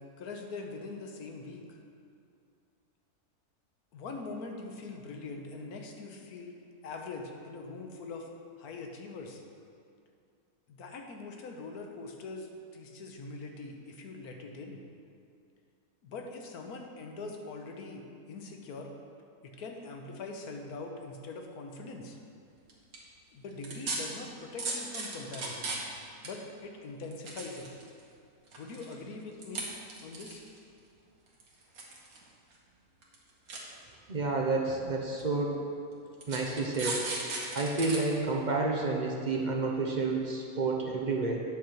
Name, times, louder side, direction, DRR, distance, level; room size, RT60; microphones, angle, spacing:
voice 1, 0.0-1.6 3.9-6.5 6.8-8.3 8.6-9.4 10.7-14.8 16.0-18.9 19.4-22.2 23.3-25.7 26.2-27.7 28.6-29.7 30.0-30.5, left 3 dB, 75° left, 2 dB, 1.4 m, -42 dB
sound 1, 22.7-23.0 23.6-24.0 24.6-26.0 26.2-26.3 27.0-28.0 28.5-28.9 29.4-29.6 29.9-30.6 31.4-32.2 32.5-32.6 33.0-33.2 33.5-33.6 34.4-34.5 35.2-35.3 36.2-38.0 38.4-38.5, right 3 dB, 65° right, 1.7 m, -36 dB
voice 2, 34.1-35.6 36.3-37.1 37.5-41.4, right 3 dB, 45° right, 0 dB, 0.6 m, -30 dB
9.3 x 4.4 x 6.4 m, 2.4 s
omnidirectional pair, 1.6 m